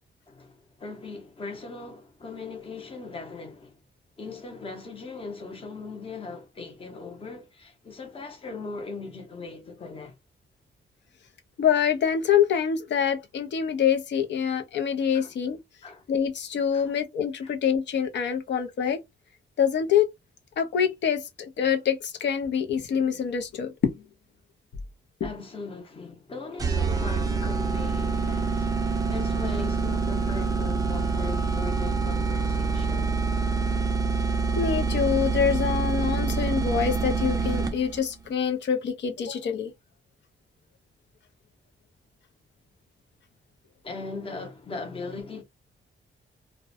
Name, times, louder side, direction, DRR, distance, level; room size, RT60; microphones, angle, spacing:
voice 1, 0.3-3.8 4.2-10.2 15.1-15.3 15.8-16.0 16.7-16.9 17.4-17.5 25.2-28.7 29.1-33.1 43.8-45.4, left 4 dB, 30° left, 0.7 m, -39 dB
voice 2, 11.6-15.6 16.1-19.0 19.6-20.1 20.6-23.9 34.6-39.7, left 8 dB, 65° left, 0.5 m, -25 dB
sound 1, 26.6-38.0, right 4 dB, 20° right, 0.4 m, -26 dB
2.5 x 2.1 x 2.5 m
wide cardioid pair, 170°, 20 cm